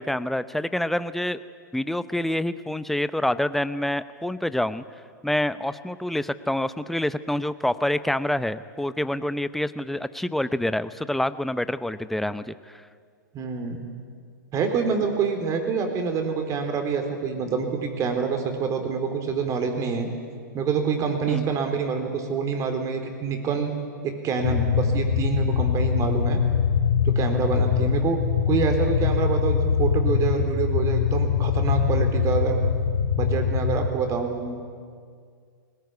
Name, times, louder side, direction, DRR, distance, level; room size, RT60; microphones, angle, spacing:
voice 1, 0.0-1.4 1.7-4.8 5.2-12.7 21.3-21.6, left 1 dB, ahead, 14 dB, 0.7 m, -27 dB
voice 2, 13.3-13.8 14.5-20.1 20.5-23.7 24.0-26.4 27.0-28.2 28.5-32.6 33.2-34.6, right 5 dB, 30° right, 5 dB, 3.9 m, -26 dB
sound 1, 24.4-33.9, left 7 dB, 70° left, 1.8 m, -23 dB
21.0 x 19.0 x 9.6 m, 2.1 s
hypercardioid pair, 110°, 11 cm